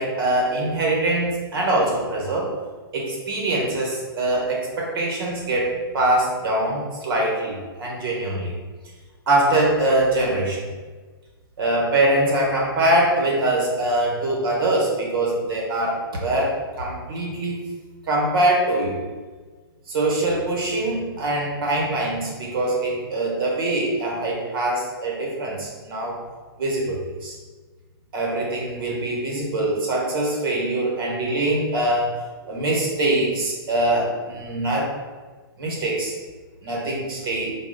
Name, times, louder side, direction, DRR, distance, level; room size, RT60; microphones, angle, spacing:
voice 1, 0.0-2.5 2.9-8.5 9.3-10.7 11.6-17.6 18.1-19.0 19.9-26.2 26.6-27.4 28.1-34.9 35.6-36.1 36.6-37.6, right 1 dB, 65° right, -2 dB, 1.4 m, -23 dB
3.9 x 2.4 x 3.9 m, 1.4 s
hypercardioid pair, 140°, 13 cm